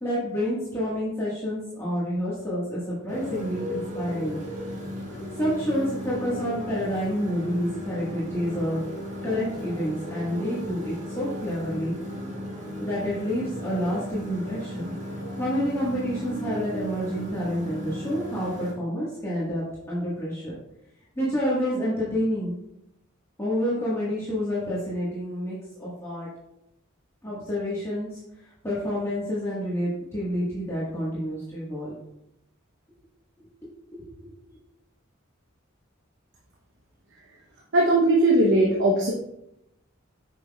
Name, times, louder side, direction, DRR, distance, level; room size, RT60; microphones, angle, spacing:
voice 1, 0.0-4.4 5.3-8.8 9.2-12.0 12.6-14.9 15.4-20.5 21.1-22.5 23.4-26.3 27.2-32.0 33.9-34.3, equal, 15° left, -9 dB, 1.5 m, -29 dB
Motorcycle, 3.1-18.7, equal, 40° right, 1.6 m, -36 dB
voice 2, 37.7-39.1, right 1 dB, 60° right, -1 dB, 0.9 m, -19 dB
7.6 x 5.9 x 2.3 m, 0.83 s
head